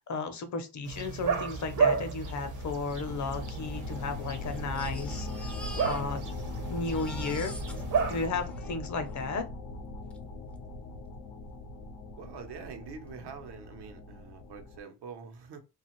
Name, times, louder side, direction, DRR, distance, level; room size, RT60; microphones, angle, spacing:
voice 1, 0.1-5.5 5.8-6.2 6.7-7.5 8.1-9.5, left 4 dB, 45° left, 0.6 m, -34 dB
sound 1, 0.8-8.3, right 5 dB, 50° right, 0.6 m, -33 dB
sound 2, 2.1-14.8, left 2 dB, 85° left, 0.7 m, -40 dB
Crying sobbing, 2.4-2.5 2.7-2.8 3.5-6.4 6.7-9.3 10.1-10.2 10.6-10.7, left 1 dB, 5° left, 0.3 m, -47 dB
voice 2, 12.2-15.6, right 6 dB, 85° right, 0.7 m, -45 dB
2.4 x 2.4 x 2.9 m
cardioid pair, 120°, 39 cm